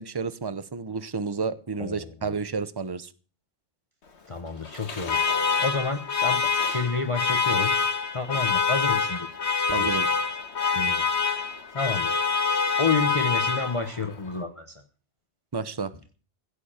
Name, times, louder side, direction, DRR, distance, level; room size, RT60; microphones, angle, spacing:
voice 1, 0.0-3.1 9.7-10.1 15.5-15.9, right 5 dB, 25° right, 14 dB, 0.9 m, -31 dB
voice 2, 1.8-2.4 4.3-6.4 6.7-7.7 8.1-9.3 9.5-10.0 10.6-11.5 11.7-12.2 12.8-14.7, left 4 dB, 30° left, 6 dB, 1.1 m, -30 dB
Alarm, 4.6-14.1, left 5 dB, 80° left, 1.8 m, -26 dB
16.5 x 6.8 x 8.9 m, 0.39 s
omnidirectional pair, 1.1 m